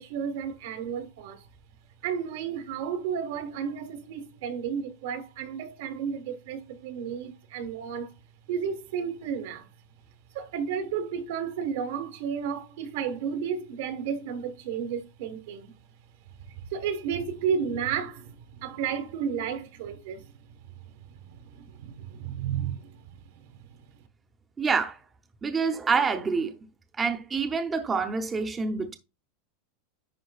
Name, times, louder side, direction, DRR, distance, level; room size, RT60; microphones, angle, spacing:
voice 1, 0.0-1.4 2.0-8.1 8.5-9.7 10.3-15.7 16.5-20.3 20.9-23.8, right 7 dB, 65° right, 1.5 m, -33 dB
voice 2, 24.6-25.0 25.4-26.6 27.0-29.0, right 5 dB, 15° right, 0.8 m, -27 dB
10.5 x 3.8 x 2.4 m
supercardioid pair, 145°, 0 cm